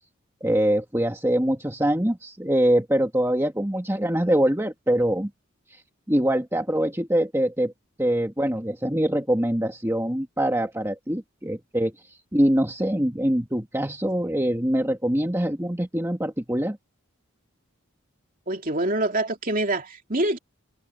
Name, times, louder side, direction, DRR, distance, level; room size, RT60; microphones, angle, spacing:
voice 1, 0.4-5.3 6.1-7.7 8.0-11.9 12.3-16.8, right 1 dB, 10° right, 1.8 m, -24 dB
voice 2, 18.5-20.4, right 1 dB, 40° right, 3.0 m, -25 dB
head